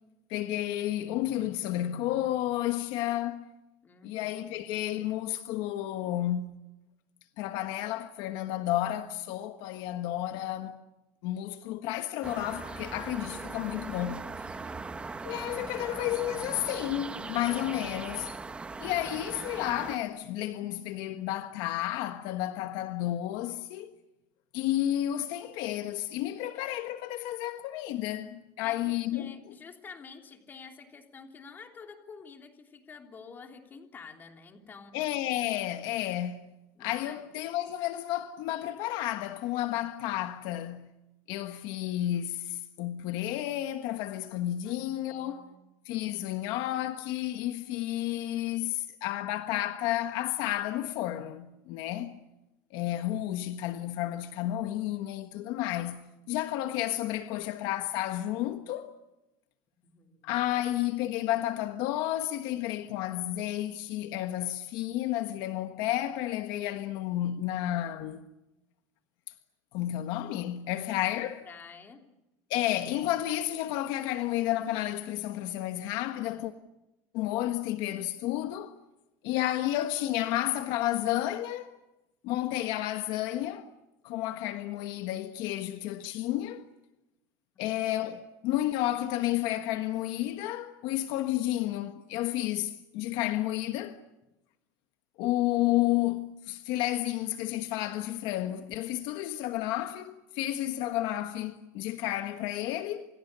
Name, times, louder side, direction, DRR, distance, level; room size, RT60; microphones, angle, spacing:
voice 1, 0.3-3.5 4.0-6.5 7.4-10.8 11.2-14.2 15.2-18.3 18.8-23.9 24.5-29.4 34.9-36.5 36.8-40.9 41.3-45.5 45.8-52.2 52.7-58.9 60.2-68.2 69.7-71.5 72.5-76.5 77.1-78.7 79.2-81.8 82.2-83.6 84.0-86.6 87.6-94.0 95.2-103.1, left 14 dB, 65° left, 1.4 m, -31 dB
voice 2, 3.8-4.6 14.5-15.4 28.6-35.0 36.7-37.2 44.6-45.6 59.8-60.4 71.4-72.0 87.5-87.8, left 5 dB, 25° left, 3.3 m, -50 dB
sound 1, 12.2-20.0, right 3 dB, 15° right, 1.1 m, -40 dB
28.5 x 28.0 x 6.9 m
cardioid pair, 160°, 8 cm